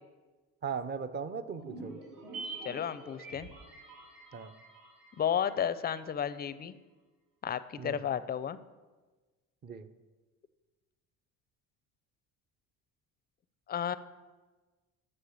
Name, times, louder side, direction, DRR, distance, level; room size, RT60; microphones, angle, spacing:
voice 1, 0.6-2.0 4.3-4.5 7.8-8.0 9.6-9.9, right 6 dB, 30° right, 11 dB, 0.6 m, -38 dB
sound 1, 1.6-6.1 6.3-6.4, right 3 dB, 75° right, 2.6 m, -46 dB
voice 2, 2.6-3.5 5.2-6.8 7.4-8.6 13.7-13.9, left 8 dB, 30° left, 15 dB, 0.4 m, -32 dB
6.7 x 5.6 x 6.8 m, 1.3 s
supercardioid pair, 95°, 34 cm